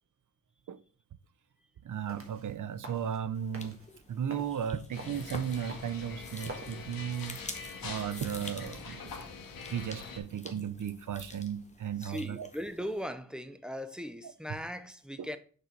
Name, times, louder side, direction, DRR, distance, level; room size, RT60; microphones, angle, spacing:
voice 1, 1.8-3.8 4.1-7.4 7.8-9.2 9.7-12.5 15.2-15.3, right 8 dB, 65° right, 0.5 m, -35 dB
sound 1, 1.9-6.9, right 2 dB, 40° right, 1.5 m, -49 dB
sound 2, 3.3-13.0, left 3 dB, 20° left, 0.9 m, -48 dB
sound 3, 4.9-10.2, left 4 dB, 85° left, 1.2 m, -44 dB
voice 2, 12.0-15.4, equal, ahead, 0.6 m, -39 dB
6.7 x 3.9 x 4.5 m
wide cardioid pair, 105°, 34 cm